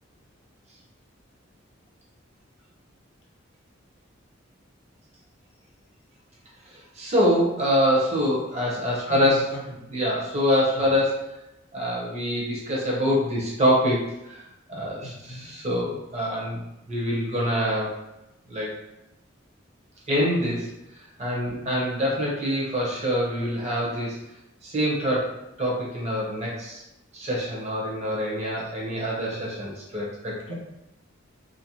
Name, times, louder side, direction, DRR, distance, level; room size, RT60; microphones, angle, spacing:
voice 1, 6.7-9.5 9.9-11.4 11.7-14.0 14.3-14.4 14.7-16.6 16.9-18.0 18.5-18.8 20.1-20.7 21.2-24.2 24.6-26.8 27.1-30.4, equal, 35° right, -4 dB, 0.7 m, -25 dB
voice 2, 9.1-9.9 10.8-10.9 15.0-15.5 21.6-21.9 30.4-30.5, left 1 dB, 60° left, -2 dB, 0.6 m, -40 dB
2.5 x 2.0 x 2.8 m, 0.89 s
head